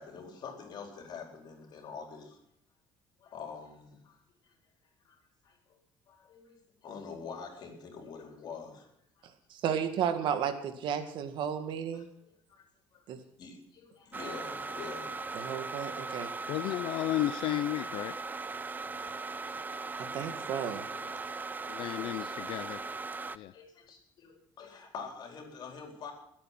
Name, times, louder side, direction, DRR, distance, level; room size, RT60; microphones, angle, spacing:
voice 1, 0.0-2.4 3.2-4.2 5.0-5.8 6.1-8.9 11.9-12.6 12.9-13.0 13.4-15.6 16.4-16.5 19.3-20.6 20.9-21.2 21.9-22.5 23.5-26.1, left 5 dB, 55° left, 3 dB, 4.5 m, -46 dB
voice 2, 9.5-12.1 13.1-13.2 15.3-16.3 20.0-20.8, right 8 dB, 65° right, 8 dB, 1.9 m, -33 dB
sound 1, 14.1-23.4, right 3 dB, 20° right, 0.5 m, -39 dB
voice 3, 16.5-18.2 18.9-19.2 21.7-22.8 23.3-23.5, left 15 dB, 70° left, 13 dB, 0.6 m, -33 dB
21.5 x 8.7 x 6.0 m, 0.75 s
cardioid pair, 135°, 9 cm